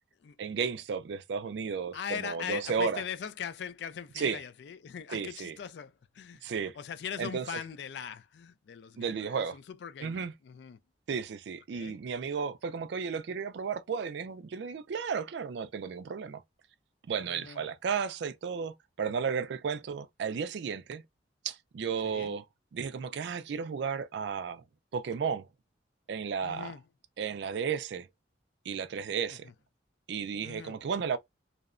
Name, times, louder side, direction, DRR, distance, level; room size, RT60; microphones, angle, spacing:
voice 1, 0.4-3.0 4.2-4.4 5.1-5.5 6.4-6.8 7.2-7.4 9.0-9.6 10.0-10.3 11.1-16.4 17.1-21.0 21.4-22.4 22.7-24.6 24.9-25.5 26.1-26.7 27.2-28.1 28.7-29.5 30.1-31.2, right 6 dB, 65° right, 0.3 m, -33 dB
voice 2, 1.9-10.8 11.7-12.0 17.3-17.6 22.0-22.3 26.4-26.9 30.4-30.8, left 7 dB, 65° left, 0.3 m, -41 dB
2.7 x 2.1 x 2.4 m
head